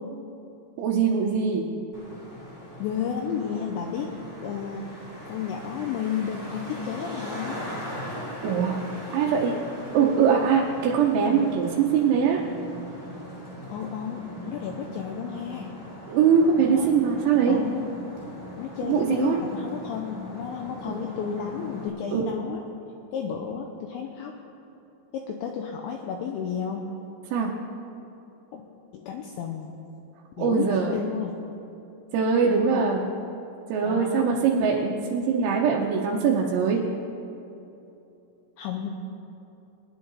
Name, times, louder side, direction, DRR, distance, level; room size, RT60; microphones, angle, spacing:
voice 1, 0.8-1.7 8.4-8.8 9.1-9.5 9.9-12.4 16.1-17.6 18.8-19.4 20.9-21.0 22.1-22.3 27.3-27.5 30.4-31.0 32.1-33.1 33.7-36.8, right 6 dB, 80° right, -2 dB, 3.6 m, -22 dB
Traffic noise roadway noise, 1.9-21.9, equal, 20° left, 1.9 m, -40 dB
voice 2, 2.8-4.1 4.4-4.9 5.3-7.6 13.7-15.7 16.7-16.9 17.5-17.9 18.6-22.6 23.1-24.3 25.1-26.9 28.5-28.6 28.9-29.7 30.4-31.4 33.8-34.4 38.6-38.9, left 7 dB, 80° left, 1 dB, 2.7 m, -32 dB
22.0 x 10.0 x 4.0 m, 2.9 s
omnidirectional pair, 6.0 m